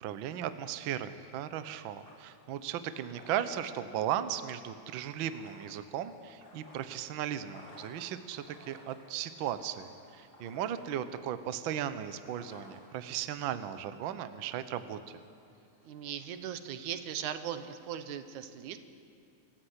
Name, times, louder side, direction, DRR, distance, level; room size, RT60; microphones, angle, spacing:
voice 1, 0.0-15.0, right 10 dB, 70° right, 11 dB, 1.2 m, -36 dB
sound 1, 1.9-16.5, left 1 dB, 20° left, 2.6 m, -59 dB
voice 2, 15.8-18.8, right 9 dB, 90° right, 10 dB, 2.4 m, -39 dB
26.0 x 14.5 x 8.1 m, 2.3 s
omnidirectional pair, 3.3 m